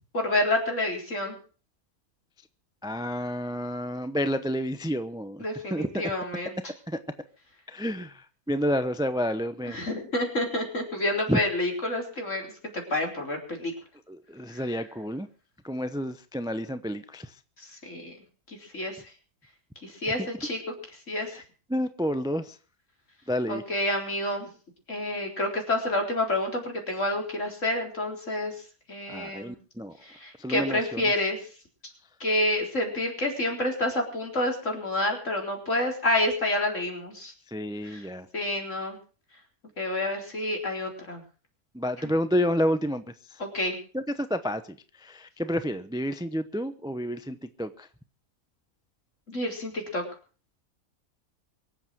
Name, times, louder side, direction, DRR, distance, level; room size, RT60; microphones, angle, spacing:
voice 1, 0.1-1.3 5.4-6.7 9.7-13.7 17.8-18.2 18.7-18.9 19.8-20.7 21.1-21.3 23.5-24.5 24.9-28.5 28.9-29.5 30.2-31.4 32.2-37.3 37.8-38.0 38.3-39.0 39.8-41.2 42.0-42.1 43.4-43.8 49.3-50.0, left 1 dB, 50° left, 2 dB, 4.4 m, -28 dB
voice 2, 2.8-5.4 5.7-5.9 7.7-8.1 8.5-9.8 11.3-11.4 14.1-15.3 15.6-17.3 21.7-22.4 23.3-23.6 29.1-29.9 30.4-31.0 37.5-38.2 41.8-43.0 43.9-44.0 44.3-44.6 45.4-47.7, equal, 5° right, 11 dB, 0.5 m, -29 dB
24.0 x 8.2 x 6.1 m, 0.38 s
omnidirectional pair, 1.6 m